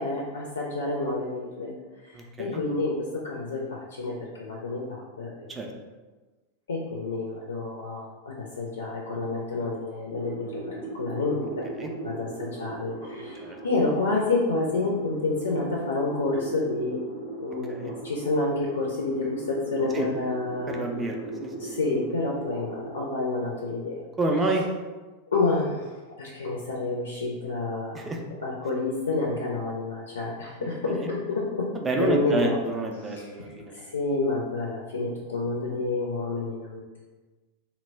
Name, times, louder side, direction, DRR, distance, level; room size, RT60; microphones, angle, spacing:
voice 1, 0.0-1.7 2.0-5.7 6.7-11.7 12.0-17.0 17.4-21.0 21.6-24.0 25.3-28.1 28.4-31.7 32.0-32.6 33.0-33.4 33.7-37.0, left 3 dB, 70° left, -3 dB, 0.4 m, -29 dB
voice 2, 2.1-2.6 5.5-5.7 11.8-11.9 13.4-13.6 17.7-17.9 19.9-20.1 20.7-21.8 24.2-24.6 27.9-28.2 30.6-30.7 31.0-31.1 31.7-33.9, right 2 dB, 15° right, 1 dB, 0.4 m, -29 dB
sound 1, 10.1-23.0, right 2 dB, 70° right, 0.6 m, -39 dB
2.1 x 2.1 x 3.2 m, 1.3 s
figure-of-eight pair, 90°, 0 cm